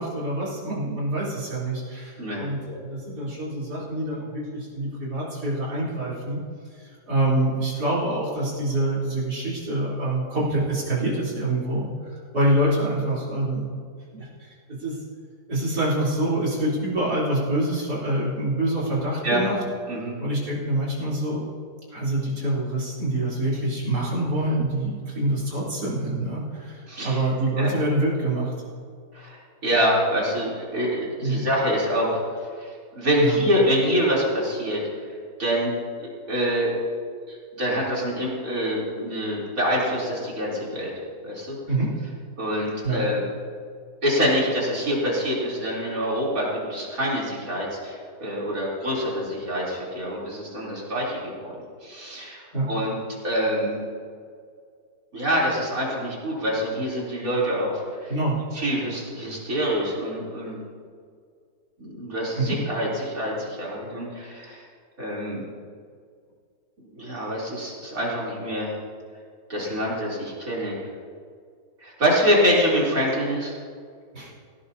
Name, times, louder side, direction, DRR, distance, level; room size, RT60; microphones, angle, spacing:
voice 1, 0.0-6.4 6.7-13.8 14.1-15.0 15.5-19.6 20.2-21.4 21.9-28.5 31.2-31.4 33.2-33.4 41.7-41.9 42.8-43.0 52.5-52.7 58.1-58.4 62.4-62.6 74.1-74.3, right 1 dB, 80° right, -7 dB, 4.3 m, -26 dB
voice 2, 26.9-27.2 27.6-27.7 29.1-32.2 32.6-34.8 35.4-35.7 36.0-36.7 37.3-40.9 41.2-41.6 42.4-43.2 44.0-51.5 51.8-52.4 52.7-53.0 53.2-53.8 55.1-58.1 58.5-60.6 61.8-64.7 65.0-65.4 66.9-68.7 69.5-70.7 71.8-73.6, equal, 60° right, -5 dB, 4.0 m, -25 dB
18.0 x 17.0 x 2.8 m, 2.1 s
omnidirectional pair, 1.7 m